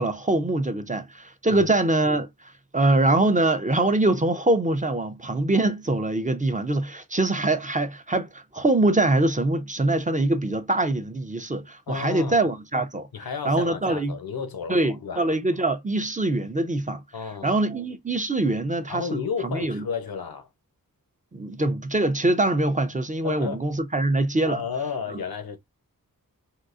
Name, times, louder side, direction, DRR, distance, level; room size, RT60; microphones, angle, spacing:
voice 1, 0.0-2.3 2.7-13.1 13.5-14.1 14.7-17.0 17.4-19.9 21.3-24.6, right 2 dB, 20° right, 0.5 m, -23 dB
voice 2, 11.9-12.4 13.1-15.3 17.1-17.6 18.9-20.5 23.2-23.7 24.4-25.6, left 6 dB, 80° left, 0.7 m, -32 dB
3.7 x 2.4 x 2.4 m
wide cardioid pair, 80°, 35 cm